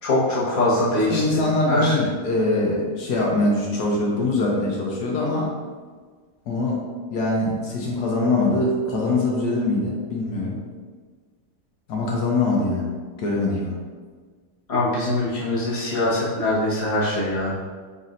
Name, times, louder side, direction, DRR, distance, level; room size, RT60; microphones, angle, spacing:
voice 1, 0.0-2.0 14.7-17.5, left 1 dB, 25° left, -8 dB, 1.1 m, -23 dB
voice 2, 1.1-5.5 6.5-6.8 7.1-10.6 11.9-12.9 13.2-13.8, left 2 dB, 75° left, -3 dB, 1.2 m, -23 dB
4.1 x 4.1 x 2.5 m, 1.5 s
omnidirectional pair, 1.8 m